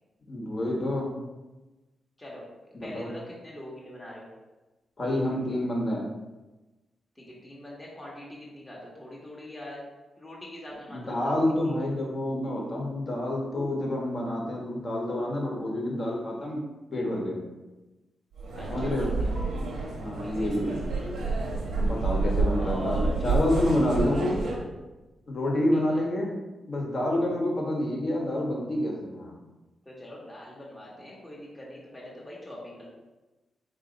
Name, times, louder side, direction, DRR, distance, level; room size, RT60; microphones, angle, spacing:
voice 1, 0.3-1.1 2.7-3.1 5.0-6.1 10.9-16.6 16.9-17.4 18.7-19.1 20.0-20.8 21.7-24.4 25.3-26.4 26.7-29.3, left 1 dB, 45° left, -2 dB, 1.2 m, -28 dB
voice 2, 2.8-4.3 7.2-9.8 10.2-11.4 11.6-11.8 18.5-19.3 20.2-20.5 22.6-23.1 24.1-24.4 25.7-26.0 29.8-32.9, left 1 dB, 20° left, -5 dB, 1.0 m, -43 dB
sound 1, 18.4-24.6, right 3 dB, 90° right, 0.9 m, -29 dB
3.8 x 2.7 x 3.9 m, 1.1 s
cardioid pair, 75°, 0 cm